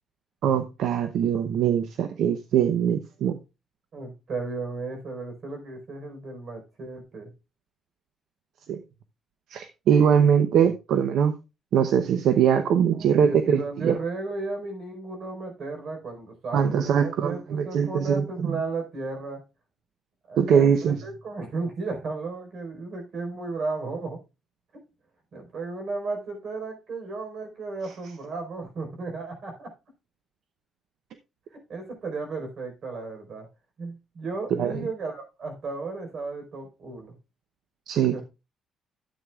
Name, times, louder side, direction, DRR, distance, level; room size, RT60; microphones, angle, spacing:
voice 1, 0.4-3.4 8.7-8.8 9.5-11.3 11.7-13.9 16.5-18.2 20.4-21.0 34.6-34.7 37.9-38.2, right 8 dB, 75° right, 0.8 m, -22 dB
voice 2, 3.9-7.3 12.9-19.4 20.3-24.2 25.3-29.7 31.5-33.5 33.8-37.1 38.1-38.2, right 3 dB, 55° right, 4.5 m, -34 dB
13.0 x 8.5 x 2.4 m
cardioid pair, 125°, 0 cm